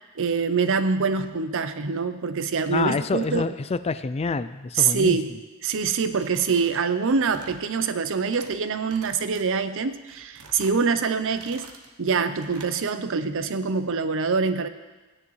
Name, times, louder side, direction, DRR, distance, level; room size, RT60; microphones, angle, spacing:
voice 1, 0.2-3.5 4.7-5.3 5.6-11.7 12.0-14.7, right 5 dB, 60° right, 11 dB, 0.6 m, -25 dB
voice 2, 2.7-5.2, left 4 dB, 30° left, 13 dB, 0.4 m, -27 dB
sound 1, 6.0-6.7 7.0-7.7 8.1-8.6 8.9-9.4 9.9-10.8 11.2-11.9 12.3-12.7, right 4 dB, 80° right, 1.1 m, -48 dB
16.5 x 9.8 x 3.2 m, 1.2 s
head